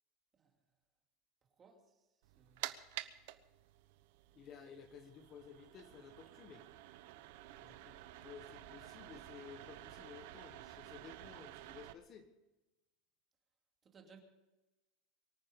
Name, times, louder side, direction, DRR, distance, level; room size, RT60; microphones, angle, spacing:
voice 1, 1.6-2.1 2.4-2.7 13.8-14.2, right 5 dB, 20° right, 2 dB, 2.5 m, -62 dB
sound 1, 2.2-11.9, right 15 dB, 65° right, 1.0 m, -51 dB
voice 2, 4.4-6.6 7.6-12.3, left 7 dB, 30° left, 7 dB, 1.3 m, -55 dB
24.0 x 9.4 x 5.3 m, 1.0 s
supercardioid pair, 165°, 0 cm